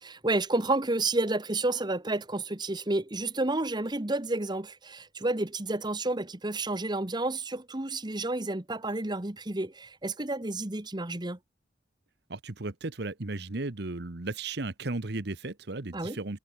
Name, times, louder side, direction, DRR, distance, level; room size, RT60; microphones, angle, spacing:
voice 1, 0.0-11.4 15.9-16.2, right 2 dB, 25° right, 1.3 m, -30 dB
voice 2, 12.3-16.4, right 2 dB, 60° right, 1.2 m, -35 dB
head